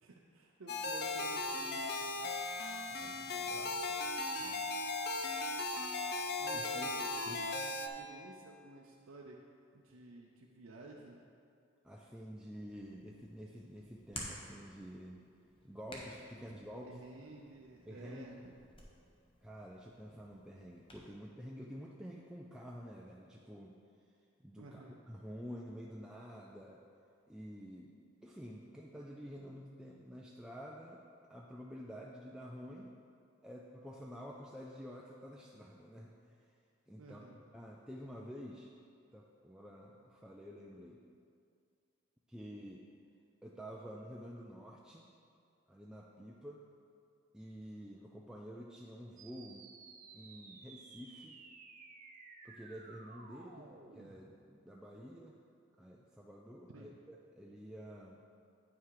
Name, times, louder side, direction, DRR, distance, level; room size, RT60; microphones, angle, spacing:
voice 1, 0.0-2.2 6.4-6.9 7.2-9.3 9.7-11.2 16.7-18.6 24.6-25.0 37.0-37.4 53.5-53.6 56.7-56.9, right 2 dB, 90° right, -1 dB, 0.7 m, -53 dB
sound 1, 0.7-7.9, left 2 dB, 50° left, 0.6 m, -37 dB
voice 2, 2.9-4.1 4.4-4.7 6.5-7.0 7.2-7.4 11.8-15.2 15.6-17.0 17.9-18.3 19.4-23.8 24.4-26.8 27.3-28.0 28.2-31.0 31.3-32.9 33.4-36.5 36.9-37.2 37.5-38.7 39.1-41.0 42.3-42.9 43.4-45.1 45.7-46.7 47.3-49.7 50.1-51.4 52.4-55.4 55.8-58.2, equal, 5° right, -2 dB, 0.4 m, -49 dB
Hands, 12.7-21.1, left 1 dB, 25° left, 1.1 m, -53 dB
sound 2, 49.2-54.2, right 4 dB, 40° right, 0.6 m, -55 dB
8.8 x 5.8 x 4.8 m, 2.4 s
head